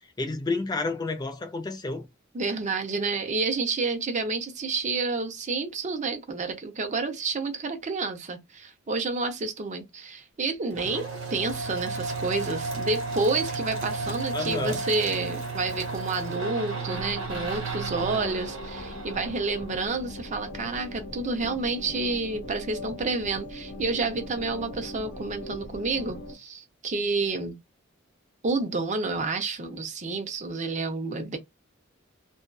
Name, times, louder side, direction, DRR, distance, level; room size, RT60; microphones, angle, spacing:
voice 1, 0.2-2.1 14.3-14.8, left 3 dB, 20° left, 0.3 m, -30 dB
voice 2, 2.3-27.6 28.4-31.4, right 3 dB, 35° right, 0.5 m, -29 dB
sound 1, 10.7-20.3, right 3 dB, 70° right, 1.1 m, -33 dB
sound 2, 16.8-26.3, left 1 dB, 55° left, 1.1 m, -40 dB
2.5 x 2.2 x 2.2 m
head